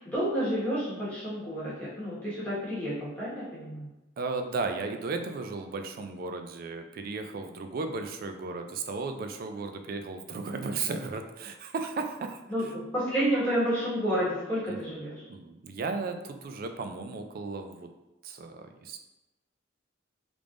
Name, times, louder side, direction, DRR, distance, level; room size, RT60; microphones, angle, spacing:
voice 1, 0.0-3.9 12.5-15.2, equal, 10° left, -10 dB, 1.4 m, -30 dB
voice 2, 4.2-12.4 14.7-15.0 15.3-17.9 18.2-19.0, right 4 dB, 50° right, 6 dB, 0.3 m, -35 dB
3.4 x 3.3 x 2.5 m, 0.99 s
head